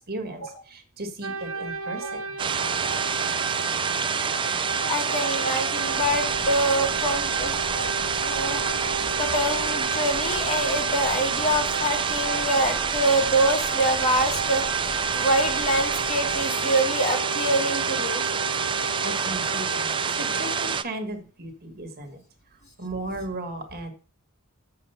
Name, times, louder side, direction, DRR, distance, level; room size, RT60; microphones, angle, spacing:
voice 1, 0.0-2.2 19.0-22.2 22.8-23.9, right 2 dB, 45° right, 5 dB, 1.7 m, -35 dB
sound 1, 1.2-20.8, right 3 dB, 65° right, 1.0 m, -33 dB
sound 2, 2.4-20.8, right 6 dB, 20° right, 0.4 m, -27 dB
voice 2, 4.9-7.5 8.2-8.7 9.2-14.6 15.1-18.2, right 1 dB, 35° left, 1 dB, 2.0 m, -25 dB
sound 3, 5.8-16.4, equal, 75° left, 1.5 m, -44 dB
8.0 x 7.0 x 5.6 m, 0.39 s
head